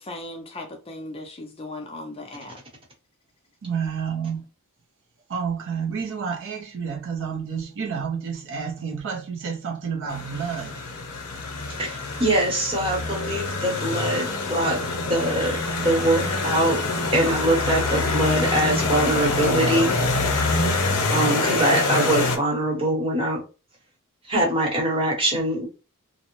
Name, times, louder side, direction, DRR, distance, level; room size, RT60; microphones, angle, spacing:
voice 1, 0.0-2.6, left 2 dB, 25° left, 0.4 m, -37 dB
voice 2, 3.6-4.5 5.3-10.8, right 6 dB, 60° right, 0.6 m, -30 dB
sound 1, 10.1-22.4, left 3 dB, 90° left, 0.6 m, -25 dB
voice 3, 11.8-14.8 15.1-15.6 15.8-16.8 17.1-20.0 21.1-23.4 24.3-25.7, right 1 dB, 25° right, 0.9 m, -23 dB
2.5 x 2.0 x 2.9 m
head